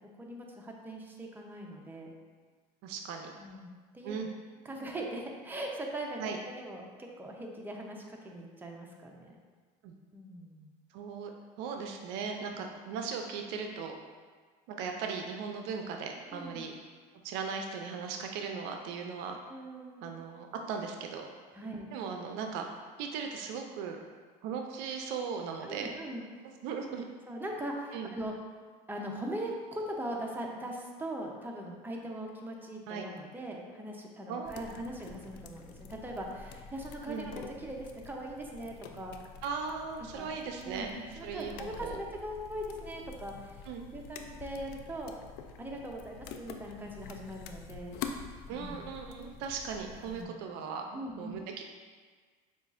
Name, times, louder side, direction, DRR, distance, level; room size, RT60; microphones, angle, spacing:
voice 1, 0.2-2.1 3.4-4.2 4.6-9.3 10.1-10.7 12.5-12.6 16.3-16.6 19.5-20.0 21.5-21.9 25.6-26.2 27.3-28.3 28.9-39.1 40.0-40.3 40.6-45.1 45.6-48.0 48.5-49.0 50.0-50.4 50.9-51.4, right 1 dB, 10° right, 0 dB, 0.7 m, -41 dB
voice 2, 2.8-3.3 4.0-4.3 6.2-6.4 9.8-9.9 10.9-11.3 11.6-13.9 14.7-16.7 17.2-19.4 20.0-21.3 21.9-22.7 23.0-24.0 24.4-25.9 26.6-27.1 27.9-28.1 32.9-33.0 34.3-34.8 37.1-37.3 39.4-40.9 41.2-42.0 43.7-43.8 48.5-51.6, right 6 dB, 65° right, 3 dB, 0.4 m, -38 dB
sound 1, 34.5-50.3, left 6 dB, 60° left, 0.4 m, -47 dB
6.8 x 2.4 x 2.5 m, 1.5 s
supercardioid pair, 90°, 19 cm